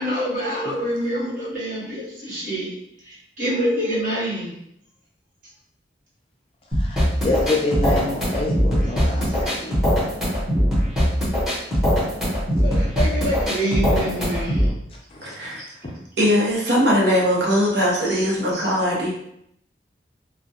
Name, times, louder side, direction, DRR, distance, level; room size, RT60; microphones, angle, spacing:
voice 1, 0.0-2.7 3.1-4.6 12.6-14.6 18.1-18.3, equal, 45° right, -8 dB, 1.0 m, -26 dB
sound 1, 6.7-14.7, equal, 5° right, 0.8 m, -21 dB
voice 2, 6.8-9.7 15.1-15.3, left 2 dB, 30° left, -2 dB, 0.4 m, -26 dB
voice 3, 15.2-15.6 16.2-19.1, equal, 75° right, -4 dB, 0.7 m, -20 dB
2.2 x 2.0 x 2.7 m, 0.75 s
head